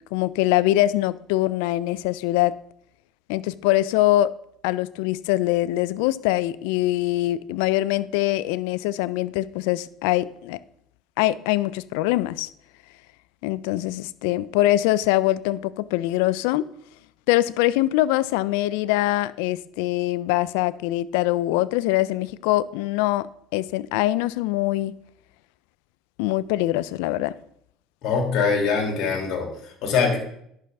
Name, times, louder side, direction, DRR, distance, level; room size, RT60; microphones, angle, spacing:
voice 1, 0.0-2.6 3.3-4.3 4.6-10.6 11.2-12.5 13.4-16.7 17.3-23.3 23.5-24.9 26.2-27.4, left 16 dB, 80° left, 0.3 m, -23 dB
voice 2, 28.0-30.2, left 5 dB, 65° left, 2.5 m, -23 dB
11.0 x 6.1 x 3.4 m
supercardioid pair, 80°, 0 cm